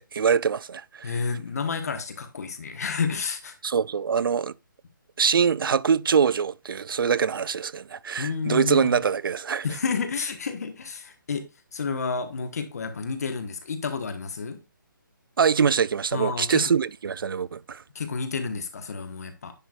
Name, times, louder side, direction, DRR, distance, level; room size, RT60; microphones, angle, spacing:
voice 1, 0.0-1.2 3.6-4.5 5.2-9.7 15.4-17.8, right 6 dB, 85° right, 0.4 m, -24 dB
voice 2, 1.0-3.5 8.2-9.0 9.6-11.4 11.7-14.6 16.1-16.5 17.9-19.5, left 5 dB, 50° left, 1.3 m, -30 dB
10.0 x 4.5 x 2.4 m
hypercardioid pair, 170°, 11 cm